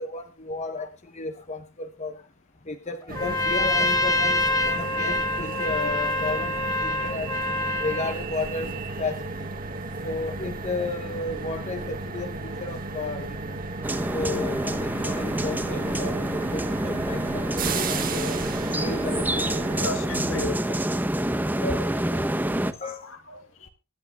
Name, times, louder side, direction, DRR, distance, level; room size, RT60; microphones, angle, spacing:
voice 1, 0.0-2.1 2.7-7.4 7.7-9.5 10.0-13.6 14.1-18.4 18.8-19.6 19.8-20.1 22.8-23.1, left 3 dB, 35° left, 0.9 m, -33 dB
Trumpet, 3.1-8.2, left 2 dB, 20° left, 1.7 m, -26 dB
sound 1, 3.1-19.9, right 3 dB, 45° right, 1.6 m, -34 dB
sound 2, 13.8-22.7, right 1 dB, 10° right, 0.8 m, -27 dB
voice 2, 19.8-20.8 21.6-22.3 23.3-23.7, left 3 dB, 65° left, 2.2 m, -34 dB
24.0 x 11.0 x 2.3 m
head